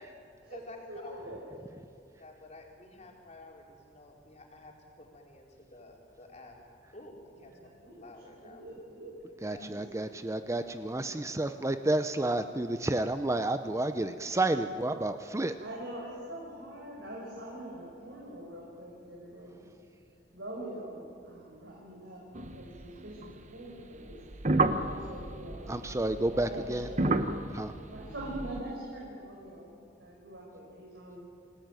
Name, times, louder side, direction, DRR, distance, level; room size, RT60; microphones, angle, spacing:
voice 1, 0.0-1.1 2.2-6.5 6.9-7.5 8.0-8.6 9.5-9.7, left 2 dB, 40° left, 0 dB, 4.4 m, -51 dB
voice 2, 0.9-1.6 7.3-9.1 9.6-10.1 10.9-11.5 15.6-19.7 20.3-22.2 22.5-24.2 24.7-25.7 26.3-27.1 27.9-29.7 30.0-31.2, right 1 dB, 75° right, -4 dB, 5.4 m, -44 dB
voice 3, 9.4-15.5 25.7-26.9 27.5-27.7, right 2 dB, 15° right, 9 dB, 0.7 m, -30 dB
sound 1, 22.3-23.4 24.0-28.6, right 2 dB, 40° right, 1.1 m, -32 dB
27.5 x 18.0 x 9.1 m, 2.4 s
head